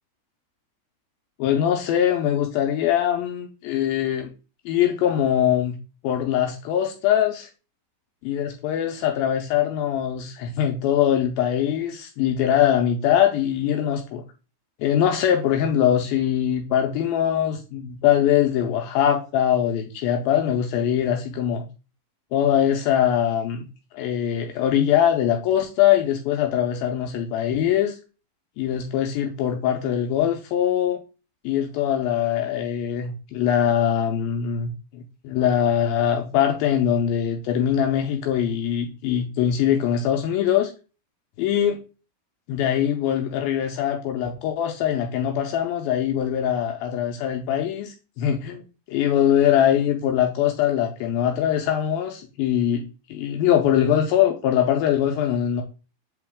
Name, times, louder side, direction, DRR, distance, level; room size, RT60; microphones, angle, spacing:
voice 1, 1.4-4.3 4.7-5.8 6.0-7.5 8.2-14.2 14.8-21.7 22.3-23.6 23.9-28.0 28.6-31.0 31.4-40.7 41.4-41.8 42.5-55.6, left 10 dB, 80° left, 3 dB, 2.3 m, -22 dB
7.5 x 3.9 x 3.5 m, 0.33 s
omnidirectional pair, 4.4 m